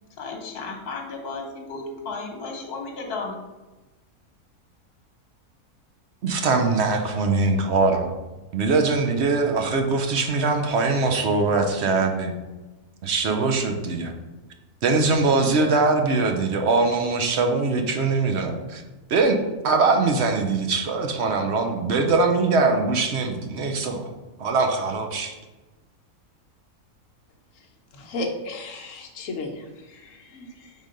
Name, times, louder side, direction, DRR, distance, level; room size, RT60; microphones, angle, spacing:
voice 1, 0.2-3.4, left 3 dB, 85° left, 1 dB, 1.5 m, -34 dB
voice 2, 6.2-8.1 8.5-12.3 13.0-14.1 14.8-18.8 19.1-19.4 19.6-24.1 24.4-25.3, right 3 dB, 55° right, 4 dB, 0.8 m, -22 dB
voice 3, 27.9-30.7, left 2 dB, 60° left, 3 dB, 1.2 m, -34 dB
5.1 x 3.8 x 5.1 m, 1.1 s
omnidirectional pair, 1.6 m